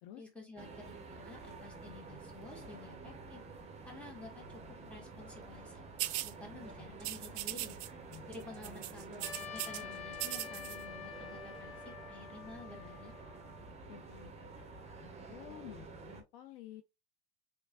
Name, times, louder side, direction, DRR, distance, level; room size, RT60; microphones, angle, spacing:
voice 1, 0.2-3.4 3.8-5.8 6.2-7.8 8.3-13.1, left 3 dB, 5° left, 1.7 m, -51 dB
sound 1, 0.6-16.2, right 3 dB, 20° right, 1.0 m, -50 dB
sound 2, 6.0-6.3 7.0-7.9 8.1-8.4 8.6-9.8 10.1-10.8, right 16 dB, 45° right, 0.4 m, -38 dB
Trumpet, 9.2-13.7, left 8 dB, 85° left, 1.4 m, -48 dB
voice 2, 13.9-14.7 15.0-16.8, left 13 dB, 60° left, 0.6 m, -52 dB
3.2 x 3.2 x 2.5 m
hypercardioid pair, 105°, 34 cm